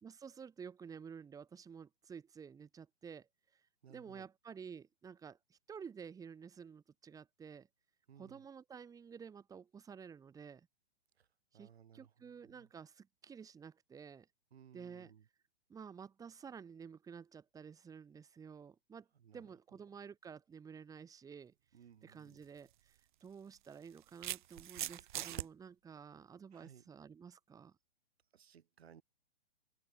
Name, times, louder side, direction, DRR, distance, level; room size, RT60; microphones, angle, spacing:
voice 1, 0.0-7.7 8.2-10.7 11.5-14.3 14.7-15.1 15.7-19.1 19.3-21.5 22.0-27.8, right 6 dB, 10° right, 4.0 m, -52 dB
voice 2, 3.8-4.3 8.1-8.4 11.2-11.3 11.5-12.7 14.5-15.3 19.1-19.8 21.7-22.4 26.5-26.9 28.3-29.0, right 8 dB, 70° right, 7.7 m, -61 dB
sound 1, 22.3-22.4 23.5-25.5, right 13 dB, 50° right, 0.6 m, -41 dB
hypercardioid pair, 150°, 33 cm